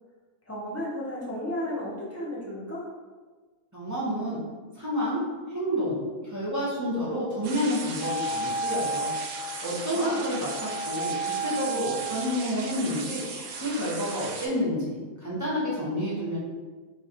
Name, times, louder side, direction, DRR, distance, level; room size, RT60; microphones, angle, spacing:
voice 1, 0.5-2.9 9.9-10.2, left 1 dB, 15° left, -7 dB, 0.5 m, -33 dB
voice 2, 3.7-4.4 4.7-6.0 6.2-9.1 9.6-11.1 11.4-13.2 13.6-16.4, equal, 15° right, -8 dB, 0.8 m, -29 dB
sound 1, 7.4-14.5, right 4 dB, 70° right, 0.9 m, -37 dB
Wind instrument woodwind instrument, 8.0-12.5, right 2 dB, 75° left, 1.1 m, -33 dB
3.2 x 2.4 x 4.2 m, 1.4 s
omnidirectional pair, 1.5 m